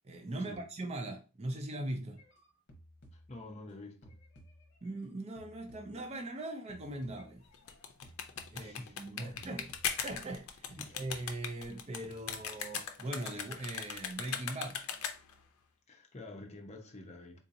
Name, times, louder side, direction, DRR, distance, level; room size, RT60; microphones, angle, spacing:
voice 1, 0.0-2.2 4.8-7.4 8.5-9.7 10.0-14.8, right 1 dB, 30° right, 0.5 m, -40 dB
sound 1, 2.1-3.7 4.0-6.4 6.7-9.0 9.4-10.4 10.7-11.5 12.0-13.1 13.4-13.9, equal, 55° left, 0.9 m, -59 dB
voice 2, 3.1-4.1 8.5-9.4 10.8-11.0 15.9-17.4, left 2 dB, 30° left, 0.6 m, -48 dB
sound 2, 7.5-15.4, left 7 dB, 75° left, 0.5 m, -39 dB
3.8 x 2.7 x 2.6 m
head